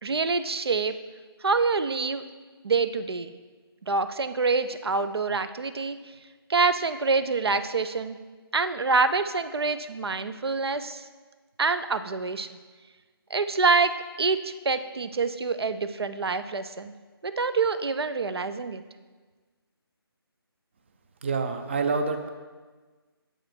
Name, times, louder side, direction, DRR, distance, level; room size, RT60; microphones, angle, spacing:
voice 1, 0.0-0.9 1.4-2.2 2.6-3.3 3.9-6.0 6.5-8.2 8.5-11.0 11.6-12.6 13.3-16.9 17.2-18.8, right 4 dB, 80° right, 11 dB, 0.5 m, -26 dB
voice 2, 21.2-22.3, right 4 dB, 30° right, 6 dB, 0.5 m, -27 dB
7.7 x 5.0 x 4.3 m, 1.4 s
figure-of-eight pair, 155°, 13 cm